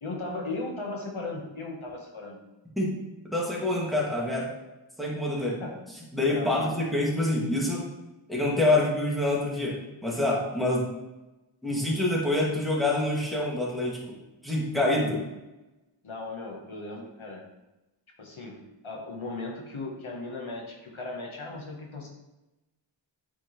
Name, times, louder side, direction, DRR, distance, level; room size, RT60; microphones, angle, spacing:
voice 1, 0.0-2.4 5.4-5.7 6.3-6.7 16.0-17.4 18.2-22.1, left 2 dB, 85° left, -1 dB, 1.3 m, -37 dB
voice 2, 3.3-4.5 5.0-5.6 6.1-7.9 8.3-10.8 11.6-14.0 14.4-15.2, left 1 dB, ahead, -5 dB, 2.1 m, -26 dB
8.6 x 4.6 x 3.2 m, 1.0 s
wide cardioid pair, 45°, 47 cm